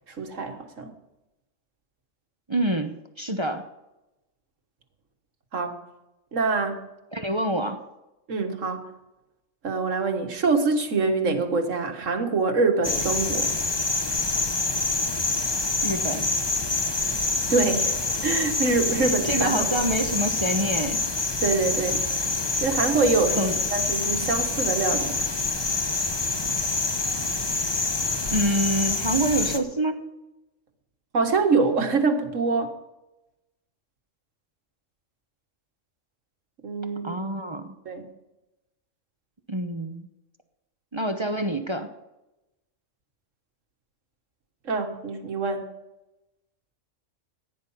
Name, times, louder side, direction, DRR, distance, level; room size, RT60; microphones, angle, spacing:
voice 1, 0.2-0.9 5.5-5.7 6.3-6.8 8.3-8.8 9.6-13.6 17.5-19.8 21.4-22.0 22.6-25.2 31.1-32.7 36.6-37.2 37.9-38.0 44.7-45.7, right 4 dB, 75° right, 5 dB, 1.9 m, -25 dB
voice 2, 2.5-3.6 7.1-7.8 15.8-16.3 19.0-21.0 23.4-23.6 28.3-30.1 37.0-37.7 39.5-40.0 40.9-41.9, right 1 dB, 25° right, 7 dB, 0.8 m, -26 dB
sound 1, 12.8-29.6, left 3 dB, 25° left, 0.9 m, -26 dB
15.0 x 10.5 x 5.7 m, 0.96 s
omnidirectional pair, 1.3 m